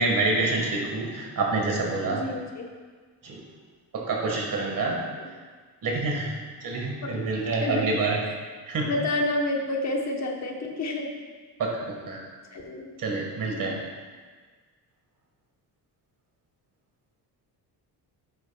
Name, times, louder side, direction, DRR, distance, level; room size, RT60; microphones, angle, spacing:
voice 1, 0.0-2.2 3.2-3.4 3.9-5.0 5.8-6.3 6.6-8.2 8.7-8.9 11.6-11.7 12.1-12.2 13.0-13.8, right 3 dB, 50° right, -1 dB, 1.7 m, -27 dB
voice 2, 2.1-2.7 4.8-5.3 7.0-7.2 7.6-7.9 8.3-8.4 8.8-11.1 12.5-12.9 13.5-13.8, left 2 dB, 40° left, 1 dB, 1.1 m, -30 dB
11.0 x 7.8 x 2.3 m, 1.5 s
cardioid pair, 165°, 41 cm